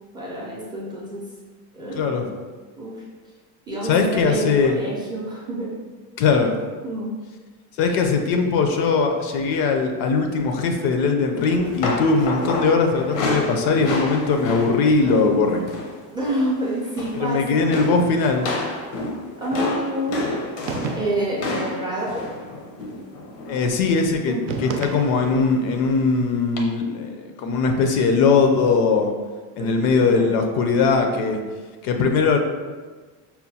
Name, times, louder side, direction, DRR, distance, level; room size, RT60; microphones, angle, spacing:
voice 1, 0.1-1.2 1.7-2.3 2.8-3.0 3.7-5.7 6.8-7.1 16.1-17.9 19.4-20.2 20.9-22.2 24.3-24.4 29.6-30.4, right 1 dB, 10° right, -7 dB, 0.4 m, -28 dB
voice 2, 1.9-2.3 3.8-4.8 6.2-6.6 7.8-15.6 17.2-18.5 23.5-29.1 29.6-31.4 31.8-32.4, left 4 dB, 60° left, 4 dB, 0.5 m, -20 dB
sound 1, 11.4-16.0 16.2-16.6 16.8-17.3 17.7-23.7 24.6-25.0 25.3-25.5 26.6-26.7, left 2 dB, 85° left, 0.8 m, -30 dB
sound 2, 20.7-21.4 24.5-25.5, right 5 dB, 75° right, 0.5 m, -31 dB
5.6 x 2.2 x 2.7 m, 1.4 s
cardioid pair, 165°, 41 cm